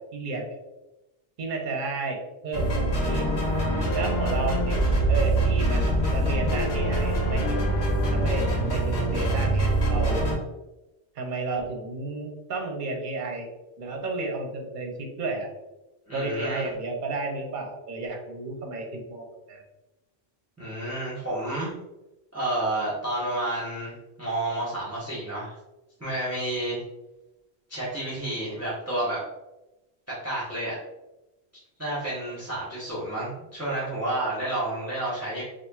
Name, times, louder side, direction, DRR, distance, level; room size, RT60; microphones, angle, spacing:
voice 1, 0.1-0.5 1.4-3.3 3.9-4.8 5.1-7.6 8.1-10.3 11.1-13.5 13.8-15.5 16.1-19.6, right 3 dB, 55° right, 1 dB, 0.8 m, -32 dB
sound 1, 2.5-10.3, right 1 dB, 90° left, 1.2 m, -24 dB
voice 2, 16.1-16.7 20.6-21.7 22.3-25.6 26.0-26.8 27.7-29.2 30.1-30.8 31.8-35.4, right 1 dB, 15° right, -9 dB, 1.0 m, -30 dB
4.2 x 2.5 x 2.3 m, 0.99 s
omnidirectional pair, 1.0 m